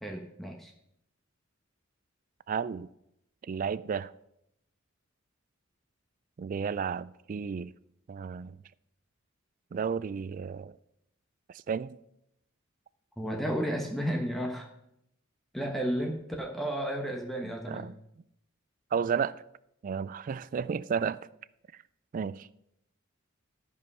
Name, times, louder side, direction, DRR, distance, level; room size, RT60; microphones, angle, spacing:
voice 1, 0.0-0.7 13.2-14.7 15.5-17.9, equal, ahead, 1.0 m, -32 dB
voice 2, 2.5-2.9 3.4-4.1 6.4-7.7 8.1-8.6 9.7-10.8 11.5-12.0 17.4-17.9 18.9-19.4 19.8-21.2 22.1-22.5, right 6 dB, 40° right, 0.3 m, -32 dB
13.5 x 5.5 x 5.4 m
head